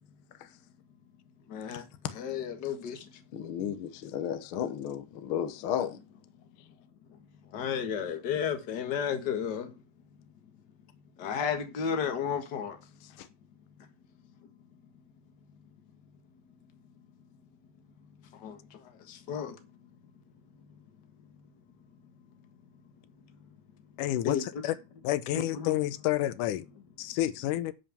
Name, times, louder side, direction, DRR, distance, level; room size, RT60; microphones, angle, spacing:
voice 1, 1.5-1.8 2.1-3.0 7.5-9.7 11.2-12.7 18.4-18.5 19.1-19.6 24.2-24.7 25.3-25.7, left 7 dB, 45° left, 1.6 m, -32 dB
voice 2, 3.3-6.0 13.2-13.3, left 9 dB, 65° left, 1.4 m, -33 dB
voice 3, 24.0-24.7 25.0-26.7 27.0-27.7, left 14 dB, 85° left, 2.3 m, -29 dB
11.0 x 5.2 x 7.0 m
omnidirectional pair, 3.5 m